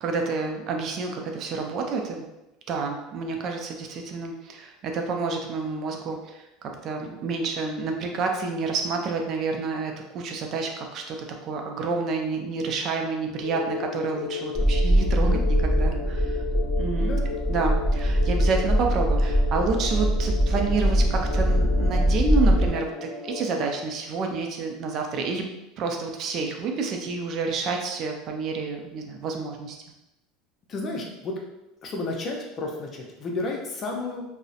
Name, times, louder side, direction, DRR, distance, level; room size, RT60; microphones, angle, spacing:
voice 1, 0.0-2.3 2.7-11.2 11.4-16.4 16.8-17.2 17.5-25.4 25.8-29.8, right 4 dB, 45° right, 3 dB, 0.4 m, -29 dB
sound 1, 13.4-23.8, left 6 dB, 90° left, 0.5 m, -35 dB
sound 2, 14.5-22.7, equal, 10° right, 0.7 m, -22 dB
voice 2, 30.7-31.3 31.8-34.2, left 2 dB, 40° left, 1 dB, 0.5 m, -32 dB
2.6 x 2.0 x 2.4 m, 0.95 s
supercardioid pair, 115°, 0 cm